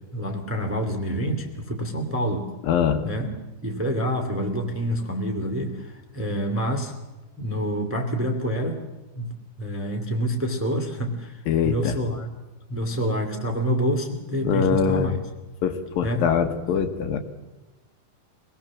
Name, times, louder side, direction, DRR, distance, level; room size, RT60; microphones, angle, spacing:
voice 1, 0.1-2.5 3.0-3.3 3.6-6.9 7.4-8.8 9.1-9.3 9.6-12.3 12.7-15.1 16.0-16.3, equal, 5° right, 2 dB, 1.8 m, -27 dB
voice 2, 2.7-3.0 11.5-12.0 14.4-15.1 15.6-17.2, left 7 dB, 70° left, 7 dB, 3.1 m, -23 dB
25.5 x 20.0 x 7.4 m, 1.1 s
omnidirectional pair, 4.4 m